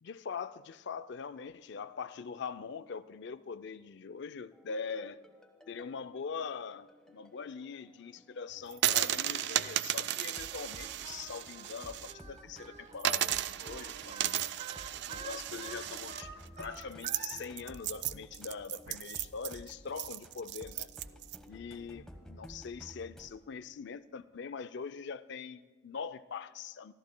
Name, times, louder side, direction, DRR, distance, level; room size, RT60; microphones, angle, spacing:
voice 1, 0.0-5.2 5.7-14.4 15.1-16.3 16.6-20.9 21.5-26.9, left 5 dB, 65° left, 13 dB, 0.4 m, -42 dB
sound 1, 4.5-23.3, equal, 5° left, 1.1 m, -54 dB
sound 2, 8.7-12.1 12.5-12.6 13.0-21.4, right 12 dB, 60° right, 0.4 m, -35 dB
Singing, 10.5-17.4, right 5 dB, 35° right, 0.9 m, -48 dB
25.5 x 14.0 x 2.2 m, 1.3 s
head